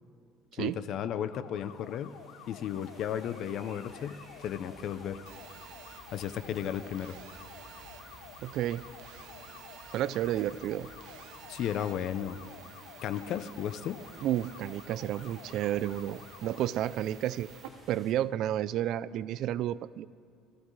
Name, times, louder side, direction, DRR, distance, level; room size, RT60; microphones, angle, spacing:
voice 1, 0.6-2.1 2.5-5.2 6.1-7.2 11.5-12.4 13.0-14.0, left 9 dB, 45° left, 12 dB, 0.5 m, -34 dB
sound 1, 1.0-16.6, left 10 dB, 85° left, 0.7 m, -51 dB
sound 2, 1.5-18.1, equal, ahead, 2.9 m, -55 dB
Telephone, 5.3-17.7, right 11 dB, 75° right, 0.7 m, -53 dB
voice 2, 8.4-8.8 9.9-10.9 14.2-17.5 17.9-20.1, right 12 dB, 50° right, 18 dB, 0.3 m, -31 dB
20.0 x 14.0 x 3.2 m, 2.3 s
cardioid pair, 170°, 0 cm